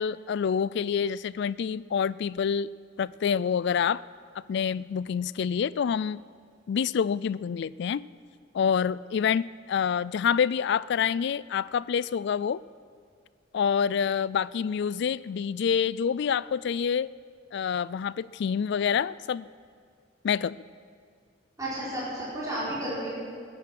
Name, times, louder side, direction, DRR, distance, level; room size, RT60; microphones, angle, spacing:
voice 1, 0.0-2.7 3.0-4.0 4.5-6.2 6.7-8.0 8.5-12.6 13.5-17.1 17.5-19.4 20.2-20.6, left 7 dB, 60° left, 19 dB, 0.3 m, -27 dB
voice 2, 21.6-23.1, right 1 dB, 20° right, -9 dB, 4.9 m, -32 dB
22.0 x 9.9 x 6.0 m, 2.1 s
head